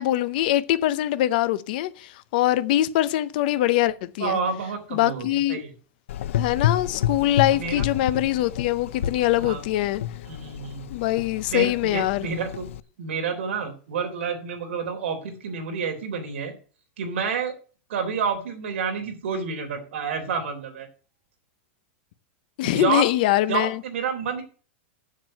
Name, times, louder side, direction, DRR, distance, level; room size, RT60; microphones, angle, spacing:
voice 1, 0.0-4.4 4.9-5.6 6.3-10.0 10.9-12.3 22.6-23.8, left 14 dB, 40° left, 0.7 m, -23 dB
voice 2, 4.2-5.7 7.5-7.8 9.4-9.6 10.3-10.9 11.5-12.7 13.0-16.5 17.0-17.5 17.9-20.9 22.6-23.0 23.5-24.4, right 5 dB, 70° right, 3.6 m, -29 dB
Gurgling / Engine, 6.1-12.8, left 11 dB, 80° left, 0.5 m, -30 dB
7.5 x 7.4 x 7.5 m
supercardioid pair, 180°, 7 cm